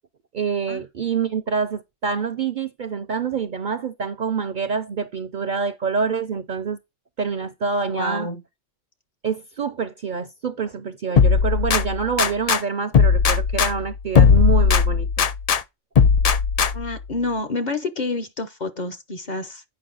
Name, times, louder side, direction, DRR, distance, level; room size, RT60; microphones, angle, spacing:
voice 1, 0.3-6.8 7.2-8.3 9.2-15.3, right 5 dB, 50° right, 0.6 m, -26 dB
voice 2, 7.9-8.4 16.7-19.6, left 3 dB, 40° left, 0.8 m, -28 dB
sound 1, 11.2-12.6 12.9-15.6 16.0-17.0, left 6 dB, 60° left, 0.4 m, -17 dB
8.6 x 5.3 x 3.9 m
omnidirectional pair, 1.3 m